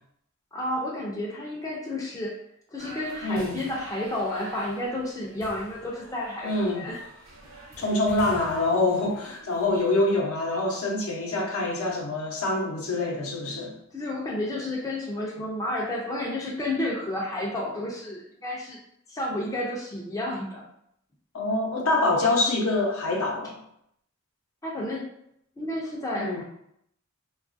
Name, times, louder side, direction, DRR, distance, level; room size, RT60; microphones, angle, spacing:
voice 1, 0.5-2.4 2.7-7.0 13.9-18.8 19.1-20.6 24.6-25.1 25.6-26.4, left 1 dB, 15° left, -3 dB, 0.4 m, -31 dB
sound 1, 2.8-10.0, right 1 dB, 65° right, 0.7 m, -46 dB
voice 2, 3.2-3.6 6.4-6.8 7.8-13.8 21.3-23.6 26.1-26.4, left 2 dB, 75° left, 0 dB, 0.7 m, -25 dB
3.0 x 2.3 x 2.5 m, 0.74 s
head